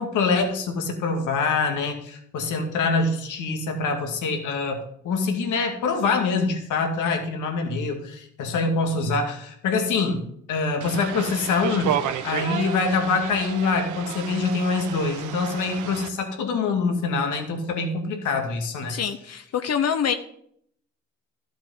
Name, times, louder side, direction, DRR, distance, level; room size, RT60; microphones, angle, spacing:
voice 1, 0.0-11.9 12.2-19.0, left 4 dB, 80° left, 4 dB, 2.2 m, -25 dB
sound 1, 10.8-16.1, right 9 dB, 75° right, 1.1 m, -32 dB
voice 2, 18.9-20.1, left 7 dB, 55° left, 9 dB, 0.9 m, -25 dB
12.5 x 7.6 x 5.7 m, 0.68 s
cardioid pair, 90°, 30 cm